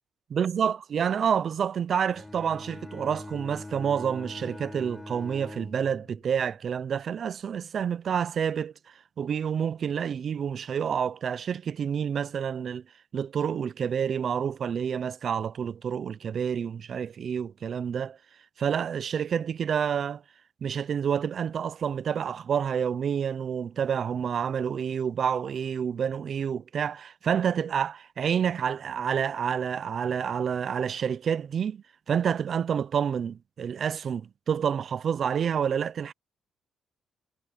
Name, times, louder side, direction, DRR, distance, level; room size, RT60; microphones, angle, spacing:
voice 1, 0.3-8.7 9.2-12.8 13.1-18.2 18.6-20.2 20.6-36.1, right 7 dB, 55° right, 0.6 m, -28 dB
Bowed string instrument, 2.1-6.4, left 2 dB, 15° left, 7.3 m, -43 dB
cardioid pair, 90°, 0 cm